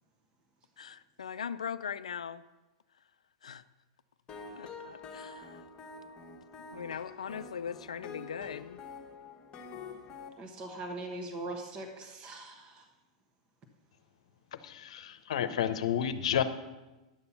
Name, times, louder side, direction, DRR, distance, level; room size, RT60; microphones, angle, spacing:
voice 1, 0.8-2.4 3.4-3.6 4.6-5.6 6.6-8.8, left 7 dB, 90° left, 12 dB, 0.3 m, -40 dB
sound 1, 4.3-10.3, left 4 dB, 30° left, 1.2 m, -47 dB
voice 2, 10.4-12.9, right 2 dB, 30° right, 4 dB, 1.3 m, -41 dB
voice 3, 14.6-16.4, left 9 dB, 75° left, 11 dB, 0.7 m, -30 dB
10.5 x 6.9 x 5.6 m, 1.1 s
hypercardioid pair, 115°, 3 cm